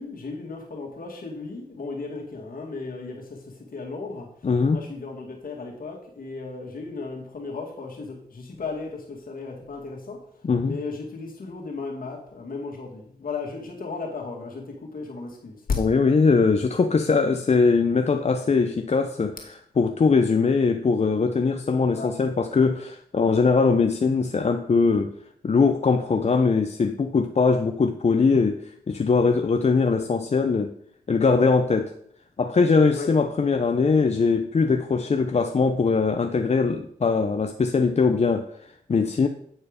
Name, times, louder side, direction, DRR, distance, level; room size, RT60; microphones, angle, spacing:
voice 1, 0.0-15.6 21.9-22.2 31.4-31.5 32.9-33.1, left 3 dB, 70° left, 0 dB, 2.2 m, -36 dB
voice 2, 4.4-4.8 10.4-10.8 15.8-19.4 19.8-25.1 25.4-30.7 31.1-31.9 32.4-39.3, left 4 dB, 45° left, 6 dB, 0.6 m, -21 dB
8.9 x 4.5 x 5.1 m, 0.66 s
cardioid pair, 45°, 15 cm